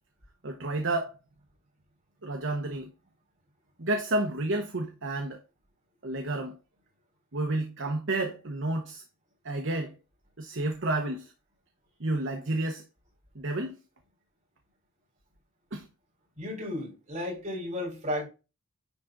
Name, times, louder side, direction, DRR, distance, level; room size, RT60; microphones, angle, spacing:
voice 1, 0.4-1.1 2.2-2.9 3.8-5.4 6.0-6.6 7.3-9.0 9.4-9.9 10.4-11.3 12.0-12.8 13.3-13.8 15.7-15.8, right 2 dB, 60° right, 1.1 m, -30 dB
voice 2, 16.4-18.3, left 1 dB, 35° right, 3.8 m, -34 dB
10.5 x 3.9 x 3.7 m
head